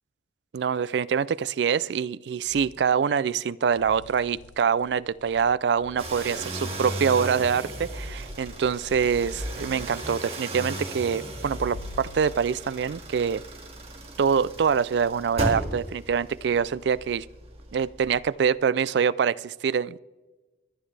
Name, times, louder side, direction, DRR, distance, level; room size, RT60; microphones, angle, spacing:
voice 1, 0.5-13.4 14.2-17.3 17.7-20.0, right 6 dB, 65° right, 18 dB, 0.3 m, -25 dB
sound 1, 2.5-2.8 3.7-6.7 7.9-10.2 11.5-12.6, left 5 dB, 85° left, 0.5 m, -46 dB
sound 2, 6.0-18.4, right 1 dB, 35° right, 2.1 m, -36 dB
25.0 x 9.4 x 3.3 m, 1.2 s
head